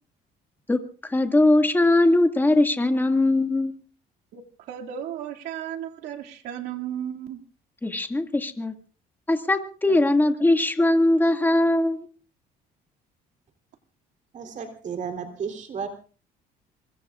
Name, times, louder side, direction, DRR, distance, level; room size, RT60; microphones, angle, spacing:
voice 1, 0.7-3.7 7.8-8.7 9.3-12.1, left 2 dB, 10° left, 5 dB, 2.1 m, -21 dB
voice 2, 4.7-7.4 9.9-10.0, right 10 dB, 85° right, 1 dB, 2.5 m, -34 dB
voice 3, 14.3-15.9, right 6 dB, 50° right, 6 dB, 3.5 m, -33 dB
25.5 x 22.0 x 2.5 m, 0.38 s
cardioid pair, 110°, 17 cm